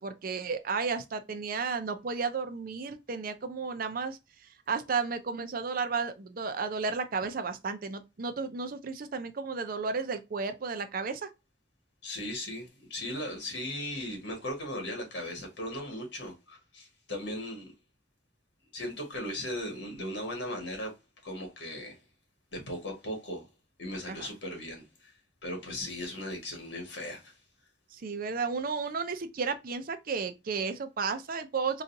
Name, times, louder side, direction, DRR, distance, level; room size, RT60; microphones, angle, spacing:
voice 1, 0.0-4.2 4.7-11.3 24.1-24.3 27.9-31.8, right 5 dB, 50° right, 0.5 m, -33 dB
voice 2, 12.0-17.7 18.7-20.9 21.2-22.0 22.5-23.4 23.8-25.1 25.4-27.3, left 1 dB, 80° left, 1.7 m, -37 dB
3.9 x 2.4 x 2.6 m
head